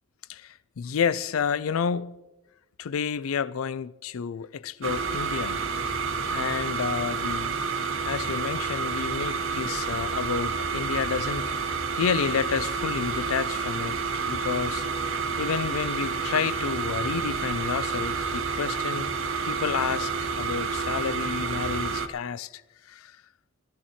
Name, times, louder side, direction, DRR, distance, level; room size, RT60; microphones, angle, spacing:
voice 1, 0.3-2.2 2.8-5.6 6.3-7.6 8.1-14.0 14.3-14.8 15.4-19.1 19.4-22.6 22.9-23.2, left 6 dB, 90° left, 0.4 m, -30 dB
sound 1, 4.8-22.1, right 5 dB, 70° right, 0.9 m, -29 dB
15.0 x 13.5 x 4.2 m
head